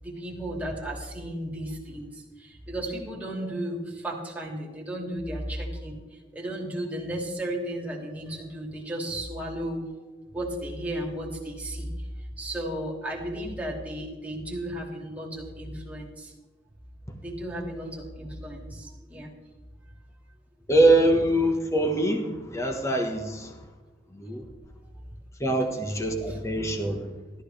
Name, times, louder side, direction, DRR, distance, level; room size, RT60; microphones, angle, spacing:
voice 1, 0.0-9.8 10.3-16.3 17.2-19.3 26.3-26.4, right 1 dB, 10° right, -2 dB, 2.7 m, -34 dB
voice 2, 20.7-23.5 24.1-24.4 25.4-27.1, right 1 dB, 15° left, 3 dB, 1.4 m, -23 dB
14.0 x 13.0 x 3.4 m, 1.2 s
head